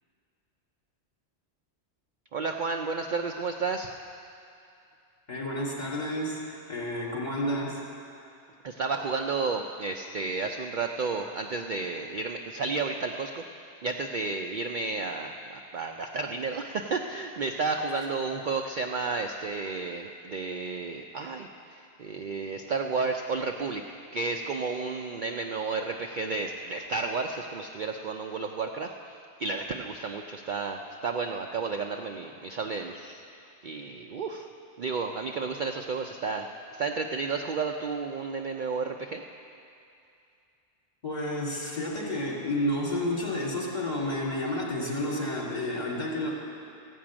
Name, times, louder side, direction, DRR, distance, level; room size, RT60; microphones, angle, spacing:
voice 1, 2.3-3.9 8.6-13.4 13.8-23.8 24.1-33.2 33.6-34.5 34.8-36.5 36.7-39.2, right 4 dB, 55° right, 3 dB, 0.6 m, -32 dB
voice 2, 5.3-7.8 41.0-46.3, left 1 dB, 35° left, -5 dB, 2.8 m, -30 dB
15.0 x 6.0 x 8.7 m, 2.5 s
omnidirectional pair, 1.2 m